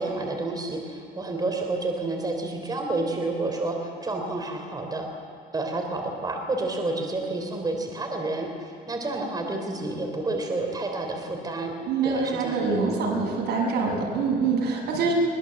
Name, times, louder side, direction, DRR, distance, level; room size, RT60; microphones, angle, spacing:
voice 1, 0.0-5.1 5.5-11.7 12.0-12.6, right 2 dB, 25° right, 3 dB, 3.6 m, -29 dB
voice 2, 11.9-15.1, right 4 dB, 75° right, 0 dB, 6.8 m, -25 dB
22.5 x 21.5 x 7.8 m, 2.5 s
cardioid pair, 110°, 17 cm